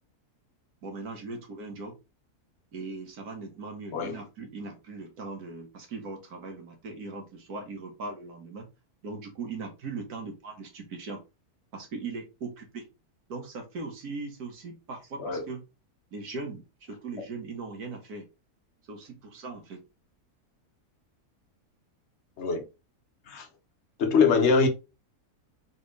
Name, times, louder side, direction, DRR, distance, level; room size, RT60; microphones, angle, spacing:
voice 1, 0.8-2.0 2.7-8.7 9.0-11.2 11.7-12.9 13.3-15.6 16.1-18.3 18.9-19.8, right 3 dB, 75° right, 1.7 m, -39 dB
voice 2, 24.0-24.7, left 5 dB, 50° left, 1.1 m, -23 dB
4.1 x 3.5 x 3.2 m
omnidirectional pair, 1.6 m